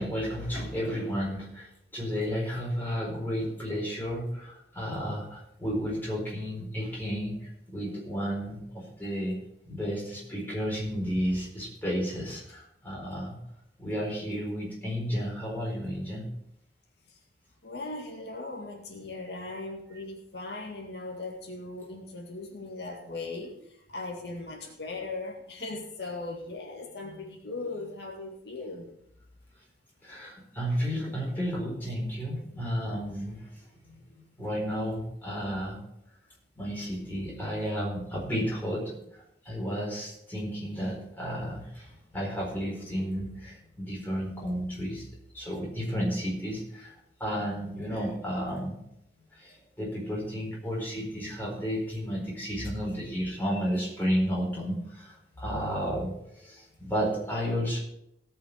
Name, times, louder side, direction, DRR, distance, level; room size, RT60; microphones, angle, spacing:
voice 1, 0.0-1.7 1.9-9.4 9.6-13.4 13.8-16.3 27.0-27.2 30.0-33.5 34.4-35.8 36.6-39.0 39.4-45.0 45.3-46.9 47.2-48.8 49.3-57.8, equal, 10° left, -5 dB, 4.4 m, -32 dB
voice 2, 17.6-23.5 23.9-28.9, left 3 dB, 75° left, -1 dB, 2.1 m, -38 dB
17.5 x 6.0 x 5.2 m, 0.78 s
head